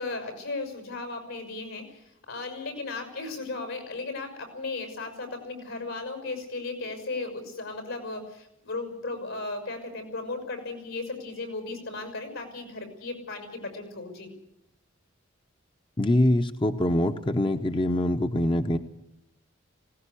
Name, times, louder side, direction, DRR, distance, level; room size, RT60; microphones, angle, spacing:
voice 1, 0.0-14.3, left 3 dB, 80° left, 6 dB, 6.2 m, -36 dB
voice 2, 16.0-18.8, left 1 dB, 25° left, 7 dB, 0.8 m, -24 dB
20.0 x 18.0 x 8.4 m, 0.83 s
head